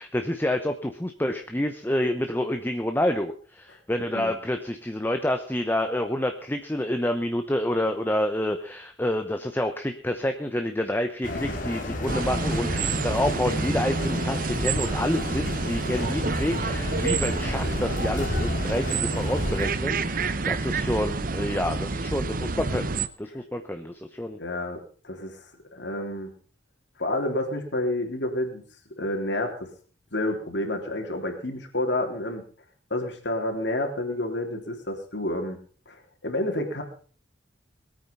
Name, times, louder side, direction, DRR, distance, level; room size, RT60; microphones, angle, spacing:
voice 1, 0.0-22.9 23.2-24.4, left 1 dB, 10° left, 6 dB, 0.9 m, -28 dB
sound 1, 11.2-19.7, left 1 dB, 45° left, 2.7 m, -32 dB
sound 2, 12.1-23.1, right 3 dB, 45° right, 0.8 m, -28 dB
voice 2, 24.4-25.4 25.7-26.3 27.0-28.6 29.0-29.7 30.1-32.4 32.9-35.6 35.9-36.8, left 1 dB, 65° left, 2 dB, 3.6 m, -29 dB
21.0 x 9.0 x 5.5 m, 0.43 s
head